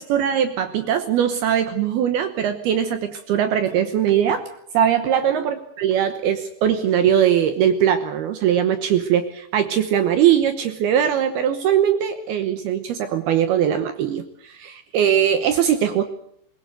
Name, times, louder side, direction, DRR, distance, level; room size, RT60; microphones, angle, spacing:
voice 1, 0.0-4.5 4.7-16.0, right 9 dB, 70° right, 9 dB, 2.5 m, -20 dB
21.0 x 20.5 x 8.0 m, 0.68 s
omnidirectional pair, 5.6 m